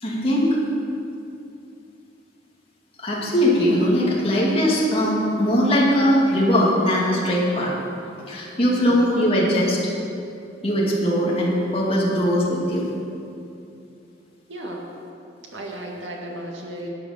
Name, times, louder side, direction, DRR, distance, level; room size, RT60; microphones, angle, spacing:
voice 1, 0.0-0.5 3.0-7.7 8.3-9.8 10.6-12.8, equal, 30° left, -4 dB, 2.2 m, -20 dB
voice 2, 8.6-9.1 14.5-14.9 15.4-16.9, right 1 dB, 90° right, -1 dB, 2.0 m, -35 dB
11.5 x 8.4 x 6.5 m, 2.7 s
head